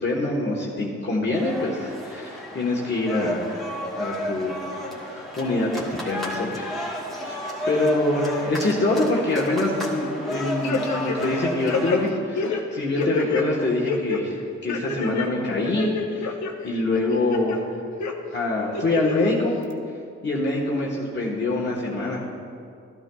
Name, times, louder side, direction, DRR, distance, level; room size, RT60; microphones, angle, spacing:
voice 1, 0.0-3.6 4.0-4.6 5.0-6.7 7.2-7.3 7.7-12.4 12.7-14.3 14.6-16.3 16.6-17.6 18.3-19.5 20.2-22.2, left 2 dB, 35° left, -4 dB, 1.3 m, -25 dB
sound 1, 1.3-12.1, equal, ahead, 1.9 m, -32 dB
sound 2, 10.6-11.4 11.7-13.4 13.9-14.2 14.7-15.3 15.6-16.5 16.9-17.6 18.0-18.1 18.7-19.3 19.7-19.8, left 5 dB, 70° left, 1.0 m, -27 dB
13.0 x 12.5 x 2.3 m, 2.4 s
cardioid pair, 100°, 29 cm